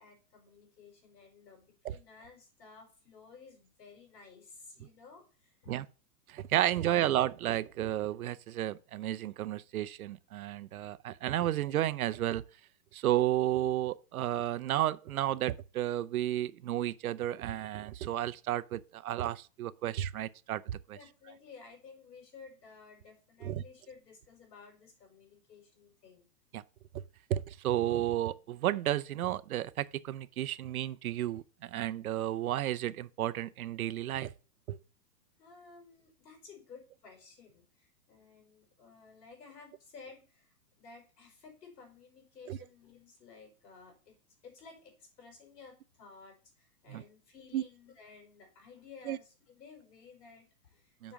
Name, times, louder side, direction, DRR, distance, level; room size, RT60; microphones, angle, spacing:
voice 1, 0.0-5.7 6.8-7.0 20.9-26.2 35.4-40.5 40.8-44.1 44.4-51.1, left 5 dB, 85° left, 5.5 m, -55 dB
voice 2, 6.3-12.4 12.9-21.0 23.4-23.6 26.5-26.6 27.3-34.3 34.7-34.8 42.5-42.6 46.9-47.0 47.5-47.6 49.1-49.2 51.0-51.1, right 13 dB, 60° right, 0.6 m, -32 dB
7.3 x 5.1 x 5.8 m
hypercardioid pair, 170°, 48 cm